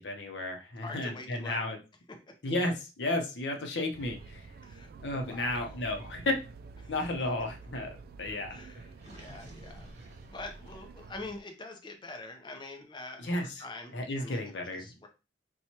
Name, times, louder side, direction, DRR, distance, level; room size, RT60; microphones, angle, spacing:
voice 1, 0.0-1.8 2.4-4.5 5.0-6.4 6.9-8.6 13.2-13.6 13.9-14.9, left 2 dB, 80° left, 3 dB, 0.7 m, -33 dB
voice 2, 0.8-1.6 2.3-2.4 4.6-4.9 5.2-5.8 6.8-6.9 8.5-9.9 10.3-15.1, left 2 dB, 25° left, 4 dB, 0.6 m, -45 dB
sound 1, 3.9-11.4, right 4 dB, 55° right, 0.3 m, -49 dB
Gurgling, 8.9-11.1, right 1 dB, 40° right, 1.1 m, -52 dB
4.4 x 2.3 x 2.8 m, 0.30 s
head